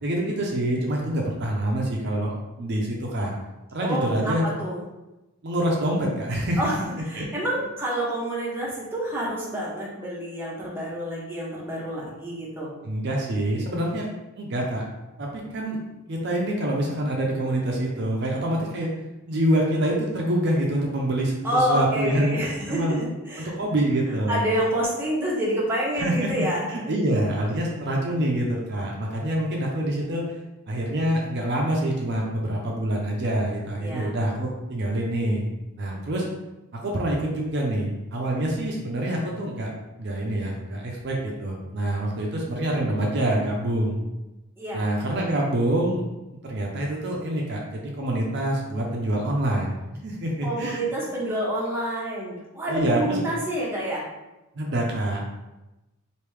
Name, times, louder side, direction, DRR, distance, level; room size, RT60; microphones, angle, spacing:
voice 1, 0.0-3.3 3.7-4.4 5.4-6.6 7.1-7.3 12.8-14.1 14.4-14.8 15.2-15.8 16.1-18.9 19.3-22.4 22.7-23.0 23.4-24.4 25.9-30.2 30.7-35.4 35.8-36.3 36.7-39.7 40.0-44.0 44.7-46.1 46.4-49.7 50.0-50.8 52.7-53.3 54.6-55.2, right 1 dB, 55° right, -1 dB, 0.5 m, -26 dB
voice 2, 3.8-4.8 6.6-6.7 7.1-12.7 13.7-13.9 21.4-23.5 24.3-26.7 33.8-34.2 44.6-44.8 50.4-54.0, right 1 dB, 10° right, -5 dB, 0.8 m, -28 dB
3.4 x 2.7 x 3.1 m, 1.0 s
head